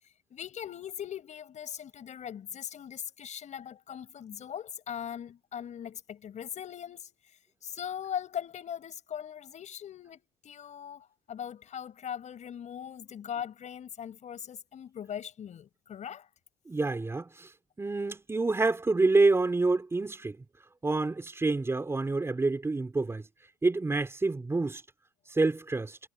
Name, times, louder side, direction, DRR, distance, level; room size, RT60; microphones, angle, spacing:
voice 1, 0.3-7.1 7.6-16.3, left 9 dB, 35° left, 5.5 m, -40 dB
voice 2, 16.7-17.5 17.8-20.4 20.8-23.3 23.6-24.8 25.3-26.0, right 3 dB, 10° right, 4.0 m, -27 dB
cardioid pair, 135°, 20 cm